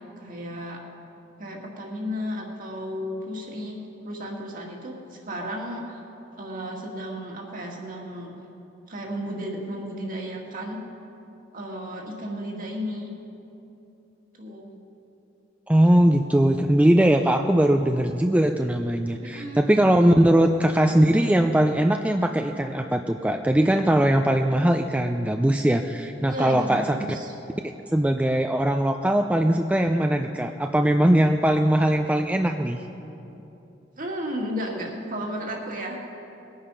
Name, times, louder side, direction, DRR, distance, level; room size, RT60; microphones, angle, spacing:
voice 1, 0.2-0.8 1.4-3.8 4.0-6.0 6.4-8.3 8.9-10.8 11.5-13.1 14.4-14.7 19.2-19.6 26.3-27.3 34.0-36.1, equal, 45° right, 0 dB, 1.9 m, -33 dB
voice 2, 15.7-27.0 27.9-32.8, right 1 dB, 5° right, 5 dB, 0.4 m, -20 dB
20.5 x 8.8 x 5.5 m, 2.9 s
head